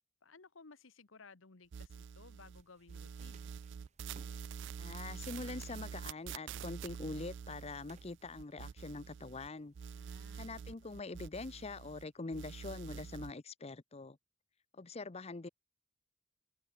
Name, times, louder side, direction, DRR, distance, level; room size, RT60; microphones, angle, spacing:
voice 1, 0.2-3.5 9.9-10.4, left 4 dB, 90° left, 1.2 m, -58 dB
sound 1, 1.7-2.6 2.9-9.5 9.7-12.0 12.3-13.3, right 7 dB, 65° right, 0.4 m, -46 dB
sound 2, 2.5-10.2, right 3 dB, 35° right, 1.7 m, -67 dB
voice 2, 4.8-9.7 10.3-14.2 14.7-15.5, left 3 dB, 30° left, 0.7 m, -44 dB
open air
head